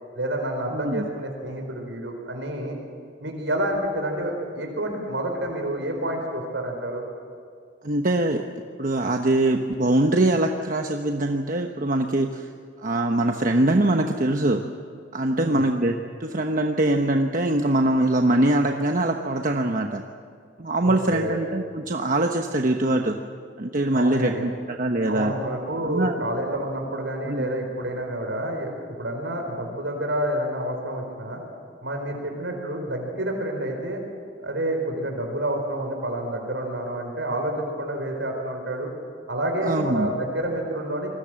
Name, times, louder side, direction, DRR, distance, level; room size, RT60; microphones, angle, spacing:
voice 1, 0.1-2.7 3.2-7.0 15.4-15.7 20.8-21.4 23.9-24.5 25.1-28.7 29.0-31.4 31.8-34.0 34.4-38.9 39.3-41.1, right 1 dB, 80° right, 3 dB, 4.4 m, -29 dB
voice 2, 0.7-1.1 7.8-8.4 8.8-12.5 12.8-14.6 15.1-15.9 16.2-20.0 20.6-23.1 23.6-25.3 25.8-26.2 27.3-27.5 39.6-40.1, right 1 dB, 45° right, 4 dB, 1.1 m, -23 dB
27.0 x 20.5 x 7.7 m, 2.2 s
head